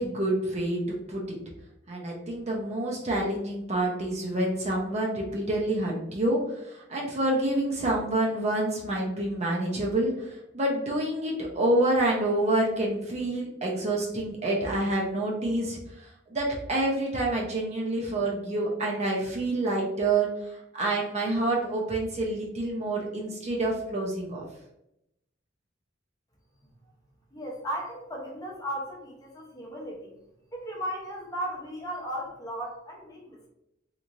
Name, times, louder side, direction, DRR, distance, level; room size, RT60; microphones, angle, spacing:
voice 1, 0.0-1.4 1.9-24.4, right 1 dB, 35° right, -2 dB, 0.6 m, -28 dB
voice 2, 27.3-30.2 30.5-33.5, equal, 20° left, -2 dB, 0.7 m, -36 dB
3.0 x 2.5 x 2.5 m, 0.83 s
head